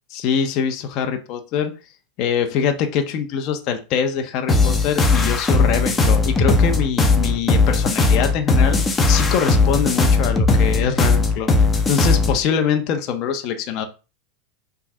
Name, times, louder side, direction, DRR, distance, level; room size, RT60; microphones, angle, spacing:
voice 1, 0.1-1.7 2.2-11.5 11.9-13.9, left 7 dB, 45° left, 5 dB, 1.2 m, -23 dB
sound 1, 4.5-12.4, left 3 dB, 15° left, 1.1 m, -17 dB
5.7 x 3.8 x 5.5 m, 0.31 s
supercardioid pair, 140°, 0 cm